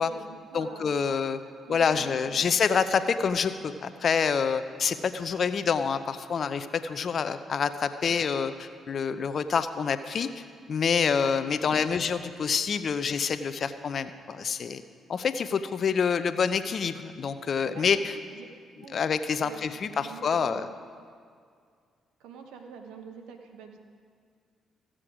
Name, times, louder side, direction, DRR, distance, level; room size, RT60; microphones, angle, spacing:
voice 1, 0.0-0.9 1.6-2.4 11.6-12.0 17.7-18.5 18.8-18.9 19.4-19.6 19.9-20.7 22.2-23.8, right 6 dB, 80° right, 5 dB, 1.0 m, -45 dB
voice 2, 0.5-1.4 1.7-10.4 10.7-14.8 15.1-18.1 18.9-20.7, left 6 dB, 55° left, 11 dB, 0.6 m, -27 dB
15.5 x 7.6 x 4.9 m, 2.1 s
supercardioid pair, 50°, 0 cm